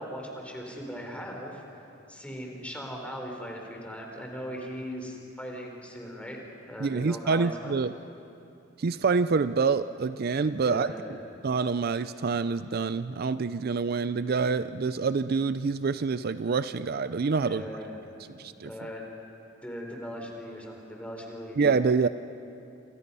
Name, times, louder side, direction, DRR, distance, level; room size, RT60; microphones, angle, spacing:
voice 1, 0.0-1.6 2.1-7.5 10.6-11.1 17.4-18.0 18.4-19.1 19.6-21.6, equal, 5° left, 1 dB, 3.9 m, -39 dB
voice 2, 6.8-7.9 8.8-10.9 11.4-17.7 18.4-18.7 21.6-22.1, right 4 dB, 55° right, 13 dB, 0.5 m, -26 dB
28.0 x 27.0 x 5.5 m, 2.7 s
head